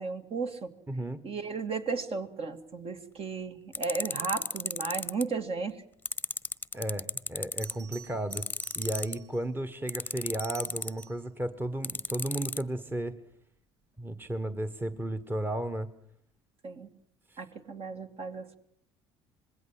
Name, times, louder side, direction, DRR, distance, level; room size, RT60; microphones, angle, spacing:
voice 1, 0.0-0.7 1.2-5.8 16.6-16.9 17.4-18.6, right 4 dB, 45° right, 7 dB, 2.5 m, -34 dB
voice 2, 0.9-1.2 6.7-8.4 8.7-13.2 14.0-15.9 17.3-17.4, right 1 dB, 15° right, 10 dB, 1.6 m, -34 dB
sound 1, 3.7-5.2 6.1-7.7 8.3-9.2 9.9-11.0 11.8-12.6, left 3 dB, 15° left, 1.1 m, -33 dB
Bell, 7.6-9.5 10.2-11.3 14.0-14.2, right 7 dB, 70° right, 3.3 m, -51 dB
25.5 x 21.0 x 7.7 m, 0.66 s
hypercardioid pair, 60°, 14 cm